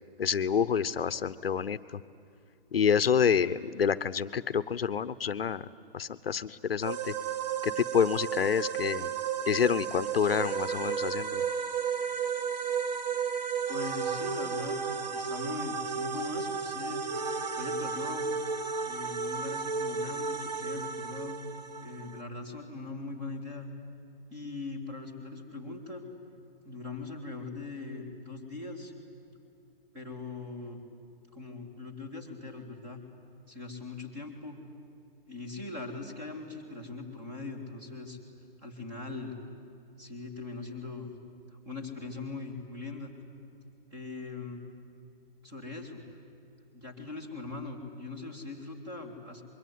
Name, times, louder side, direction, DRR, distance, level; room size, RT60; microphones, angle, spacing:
voice 1, 0.2-2.0 2.7-5.7 5.9-7.1 7.6-9.1 9.5-11.4, left 7 dB, 75° left, 14 dB, 0.9 m, -28 dB
sound 1, 6.8-22.2, right 6 dB, 45° right, 1.3 m, -33 dB
voice 2, 13.7-17.1 17.6-18.3 18.8-21.4 21.8-23.7 24.3-26.0 26.6-28.9 29.9-30.8 31.3-33.0 33.5-34.6 35.3-38.2 38.6-39.4 40.0-41.1 41.6-43.1 43.9-44.7 45.4-46.0 46.7-49.4, left 3 dB, 10° right, 2 dB, 2.2 m, -41 dB
25.0 x 22.5 x 9.5 m, 2.6 s
hypercardioid pair, 170°, 29 cm